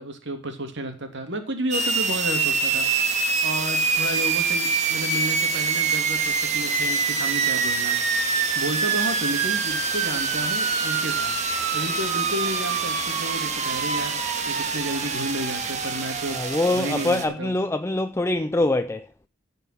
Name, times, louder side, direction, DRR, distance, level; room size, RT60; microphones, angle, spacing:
voice 1, 0.0-2.9 3.1-8.0 8.5-16.4 16.7-17.6, right 1 dB, 60° right, 2.8 m, -32 dB
sound 1, 1.7-17.2, right 4 dB, 35° right, 2.1 m, -25 dB
voice 2, 16.3-19.1, left 2 dB, 15° left, 0.5 m, -24 dB
15.5 x 5.6 x 5.8 m
head